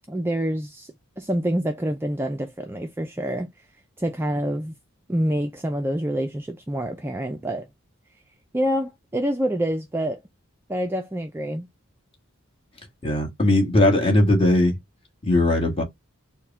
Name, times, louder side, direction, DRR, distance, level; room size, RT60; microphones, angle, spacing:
voice 1, 0.1-3.5 4.0-4.7 5.1-7.7 8.5-10.2 10.7-11.7, equal, 10° right, 0.3 m, -27 dB
voice 2, 13.0-14.7 15.2-15.8, left 1 dB, 25° left, 1.4 m, -19 dB
4.5 x 2.1 x 3.4 m
head